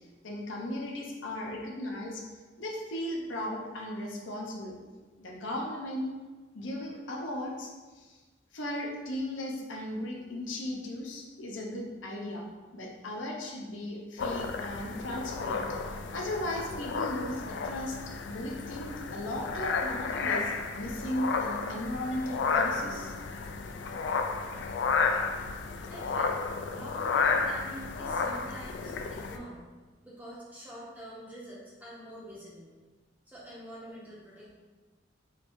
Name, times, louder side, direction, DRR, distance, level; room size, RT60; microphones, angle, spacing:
voice 1, 0.2-2.2 2.6-4.8 5.2-6.1 6.5-8.2 8.5-12.5 12.7-15.7 16.1-18.0 18.2-23.1, left 1 dB, 85° left, -1 dB, 0.8 m, -36 dB
sound 1, 14.2-29.4, left 4 dB, 70° left, 0.3 m, -32 dB
voice 2, 25.9-26.4 26.7-29.6 30.0-32.7 33.3-34.5, right 1 dB, 10° right, -7 dB, 1.1 m, -45 dB
4.1 x 2.6 x 4.5 m, 1.3 s
head